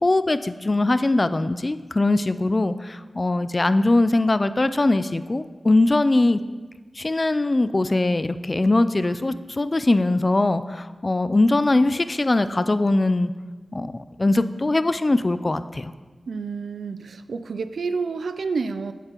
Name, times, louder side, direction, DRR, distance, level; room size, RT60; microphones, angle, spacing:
voice 1, 0.0-6.4 7.0-13.3 13.7-13.9 14.2-15.9, left 2 dB, 35° left, 12 dB, 0.3 m, -21 dB
voice 2, 16.3-18.9, right 4 dB, 85° right, 11 dB, 0.3 m, -29 dB
8.7 x 8.0 x 3.0 m, 1.3 s
cardioid pair, 55°, 0 cm